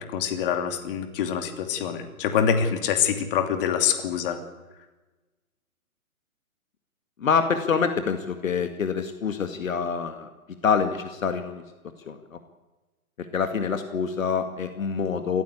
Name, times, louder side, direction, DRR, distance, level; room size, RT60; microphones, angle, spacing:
voice 1, 0.0-4.4, left 8 dB, 40° left, 7 dB, 2.9 m, -25 dB
voice 2, 7.2-10.3 10.6-11.6 12.1-12.4 13.2-15.4, left 6 dB, 65° left, 7 dB, 2.2 m, -26 dB
27.0 x 15.5 x 8.5 m, 1.2 s
figure-of-eight pair, 135°, 43 cm